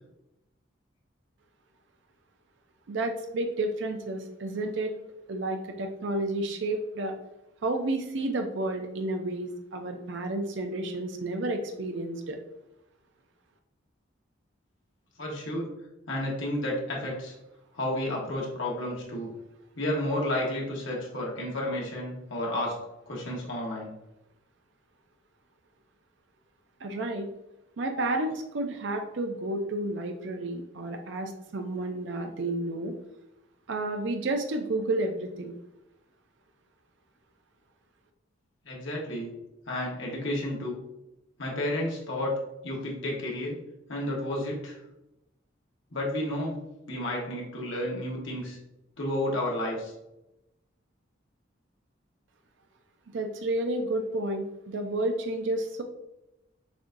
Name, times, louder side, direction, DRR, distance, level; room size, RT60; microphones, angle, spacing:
voice 1, 2.9-4.9 5.3-7.1 7.6-12.4 26.8-27.3 27.8-32.9 33.7-35.5 53.1-55.8, right 2 dB, 65° right, 5 dB, 0.5 m, -31 dB
voice 2, 15.2-15.7 16.1-17.3 17.7-19.3 19.8-22.8 23.1-23.9 38.6-39.3 39.7-40.8 41.4-42.3 42.6-43.6 43.9-44.8 45.9-46.5 46.9-48.6 49.0-49.9, left 1 dB, 75° left, -3 dB, 1.3 m, -31 dB
6.6 x 2.6 x 2.6 m, 0.91 s
head